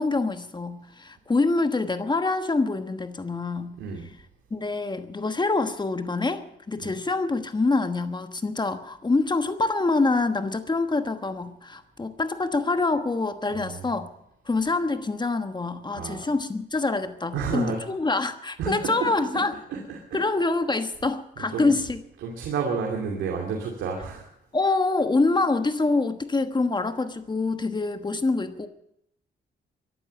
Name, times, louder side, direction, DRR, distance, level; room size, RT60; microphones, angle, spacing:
voice 1, 0.0-3.8 4.5-14.1 14.5-19.6 20.1-22.0 24.5-28.7, left 3 dB, 25° left, 9 dB, 1.3 m, -25 dB
voice 2, 13.5-13.9 15.9-16.2 17.3-17.8 18.6-19.4 19.7-20.2 21.4-21.7 22.2-24.3, right 5 dB, 90° right, 0 dB, 2.7 m, -31 dB
14.0 x 12.0 x 7.8 m, 0.79 s
cardioid pair, 85°, 19 cm